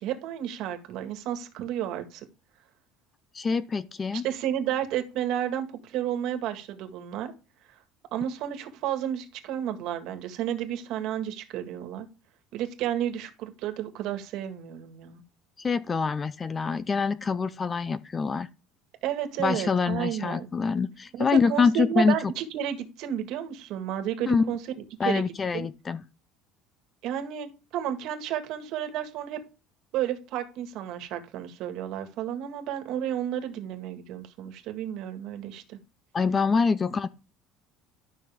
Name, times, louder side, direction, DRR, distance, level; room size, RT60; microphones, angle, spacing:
voice 1, 0.0-2.2 4.2-7.3 8.1-12.1 12.5-15.2 19.0-20.5 21.1-24.6 25.0-25.2 25.5-25.7 27.0-29.4 29.9-35.8, right 10 dB, 55° right, 1.8 m, -32 dB
voice 2, 3.3-4.2 15.6-18.5 19.4-22.2 24.3-24.5 25.0-26.0 36.1-37.1, left 5 dB, 20° left, 0.5 m, -25 dB
12.5 x 6.0 x 3.6 m
cardioid pair, 165°, 0 cm